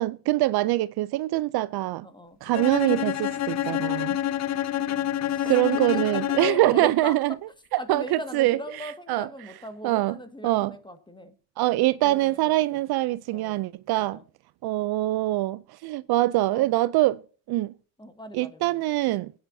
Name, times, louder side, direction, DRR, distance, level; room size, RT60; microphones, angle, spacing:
voice 1, 0.0-2.1 2.4-4.2 5.4-7.3 7.7-9.5 9.8-10.2 10.4-10.8 11.6-14.2 14.6-17.2 17.5-17.7 18.3-19.3, right 17 dB, 60° right, 0.5 m, -24 dB
voice 2, 2.0-2.4 5.3-5.5 5.9-7.2 7.8-11.3 12.0-12.5 13.3-13.6 14.0-14.2 16.4-16.7 18.0-18.7, equal, 10° left, 1.8 m, -39 dB
Bowed string instrument, 2.5-6.8, left 11 dB, 40° left, 0.5 m, -27 dB
22.0 x 9.4 x 2.7 m
supercardioid pair, 80°, 42 cm